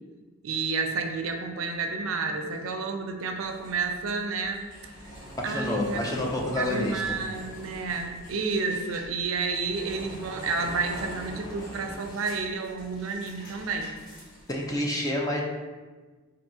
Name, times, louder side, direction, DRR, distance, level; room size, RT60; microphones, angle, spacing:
voice 1, 0.4-4.7 5.4-6.0 6.5-13.9, right 4 dB, 80° right, 5 dB, 0.4 m, -30 dB
sound 1, 3.4-14.8, equal, 45° left, 1.4 m, -44 dB
voice 2, 5.4-7.2 14.5-15.4, left 1 dB, 15° left, -1 dB, 0.4 m, -28 dB
4.6 x 2.6 x 2.7 m, 1.3 s
head